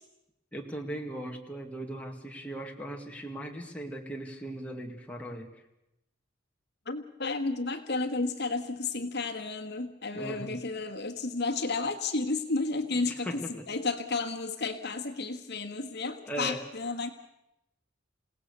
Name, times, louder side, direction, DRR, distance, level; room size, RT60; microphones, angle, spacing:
voice 1, 0.5-5.6 10.1-10.6 12.9-13.7 16.3-16.7, right 1 dB, 5° left, 1 dB, 2.1 m, -38 dB
voice 2, 6.8-17.1, left 3 dB, 55° left, 6 dB, 1.5 m, -32 dB
28.5 x 17.5 x 6.8 m, 0.89 s
head